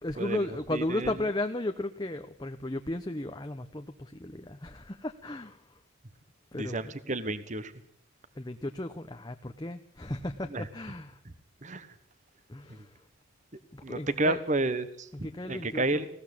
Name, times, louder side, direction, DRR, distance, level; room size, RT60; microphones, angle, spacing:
voice 1, 0.0-5.8 6.5-6.9 8.3-11.2 12.5-13.1 13.7-14.4 15.1-16.1, left 1 dB, 20° left, 6 dB, 0.8 m, -35 dB
voice 2, 0.7-1.1 6.6-7.7 10.5-10.6 11.6-11.9 12.7-12.8 13.8-15.1 15.5-16.1, right 2 dB, 35° right, 13 dB, 1.2 m, -30 dB
20.0 x 17.0 x 8.7 m, 0.66 s
head